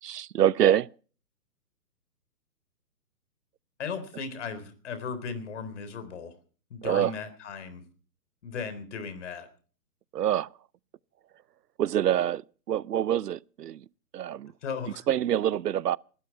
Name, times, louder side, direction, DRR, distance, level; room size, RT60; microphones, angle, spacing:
voice 1, 0.0-0.9 6.8-7.1 10.1-10.5 11.8-12.4 12.7-13.8 14.1-14.5 15.1-16.0, right 11 dB, 85° right, 0.7 m, -25 dB
voice 2, 3.8-6.4 6.7-7.8 8.4-9.5 14.6-15.0, left 5 dB, 45° left, 3.8 m, -36 dB
20.0 x 13.0 x 4.4 m
hypercardioid pair, 160°, 47 cm